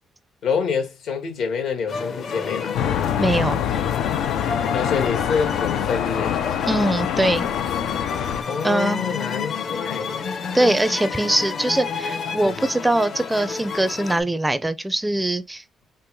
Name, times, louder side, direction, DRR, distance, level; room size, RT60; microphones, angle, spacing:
voice 1, 0.4-2.8 4.7-6.4 8.4-10.3, left 6 dB, 75° left, 1.4 m, -26 dB
sound 1, 1.9-14.2, left 5 dB, 55° left, 0.8 m, -30 dB
sound 2, 2.7-8.4, left 10 dB, 90° left, 0.4 m, -25 dB
voice 2, 3.2-3.6 6.7-7.5 8.6-9.0 10.5-15.6, right 1 dB, 10° right, 0.4 m, -22 dB
5.2 x 2.0 x 2.8 m
cardioid pair, 90°, 0 cm